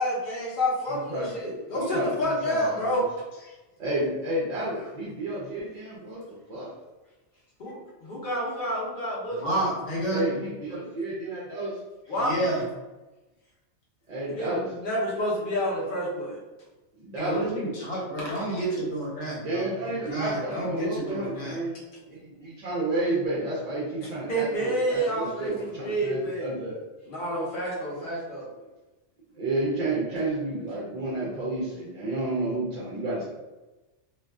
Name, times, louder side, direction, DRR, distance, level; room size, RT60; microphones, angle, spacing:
voice 1, 0.0-3.0 3.3-3.5 7.6-9.6 12.1-12.5 14.4-16.4 18.5-18.6 24.0-26.5 27.1-28.5, equal, 55° left, -5 dB, 0.8 m, -29 dB
voice 2, 1.8-3.0 3.8-6.7 10.1-11.8 14.1-14.7 17.0-17.5 19.4-21.8 22.1-26.8 29.3-33.2, right 2 dB, 50° right, -7 dB, 0.5 m, -31 dB
voice 3, 9.3-10.2 12.1-12.6 17.2-21.6, right 1 dB, 85° left, -5 dB, 1.1 m, -30 dB
2.5 x 2.3 x 2.2 m, 1.1 s
omnidirectional pair, 1.2 m